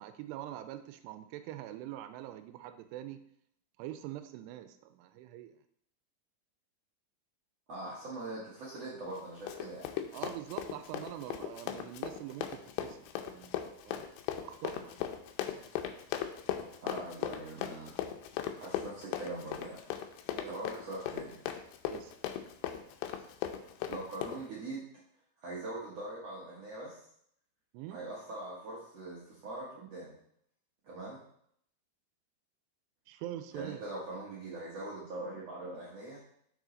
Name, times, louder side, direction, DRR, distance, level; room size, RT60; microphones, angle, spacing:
voice 1, 0.0-3.2 3.8-5.5 10.1-13.6 13.9-14.1 14.4-15.1 15.5-15.7 20.3-20.6 21.9-22.1 27.7-28.0 33.1-33.8, right 13 dB, 90° right, 10 dB, 2.7 m, -44 dB
voice 2, 7.7-9.9 16.8-17.9 18.5-19.8 20.5-21.4 23.9-24.9 25.4-27.0 27.9-30.2 30.8-31.2 33.5-36.2, right 2 dB, 65° right, -6 dB, 1.6 m, -42 dB
Run, 9.1-24.4, left 10 dB, 85° left, 2.7 m, -38 dB
6.2 x 6.2 x 3.9 m, 0.69 s
omnidirectional pair, 4.7 m